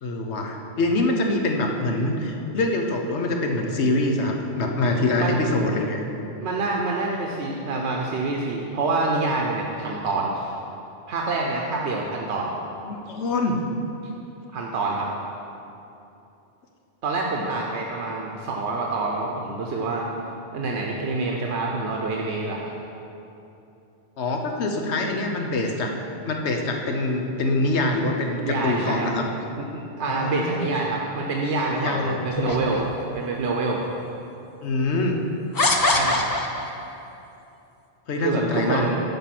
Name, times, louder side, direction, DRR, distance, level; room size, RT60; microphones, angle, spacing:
voice 1, 0.0-6.0 12.8-13.6 24.2-25.9 26.3-29.2 30.1-30.6 31.8-32.2 34.6-35.2 38.1-38.9, left 2 dB, 85° left, 3 dB, 1.2 m, -24 dB
voice 2, 6.4-10.5 11.1-12.5 14.5-15.1 17.0-20.1 20.5-22.7 28.4-29.1 29.7-32.9 33.1-33.8 35.8-36.2 38.1-39.0, right 3 dB, 85° right, -1 dB, 1.1 m, -26 dB
sound 1, 32.3-33.2 34.0-34.1 35.6-36.9, left 2 dB, 25° left, 0.5 m, -23 dB
9.1 x 5.5 x 5.9 m, 2.8 s
omnidirectional pair, 1.1 m